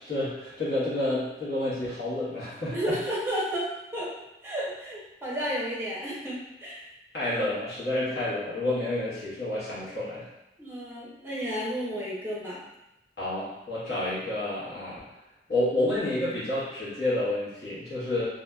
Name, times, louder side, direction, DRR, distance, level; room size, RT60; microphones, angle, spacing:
voice 1, 0.0-2.9 7.1-10.3 13.2-15.0 15.5-18.2, left 1 dB, 65° left, -10 dB, 1.3 m, -29 dB
voice 2, 2.7-4.1 4.4-6.9 10.6-12.6, equal, 15° right, -6 dB, 0.7 m, -32 dB
2.8 x 2.5 x 2.3 m, 0.91 s
head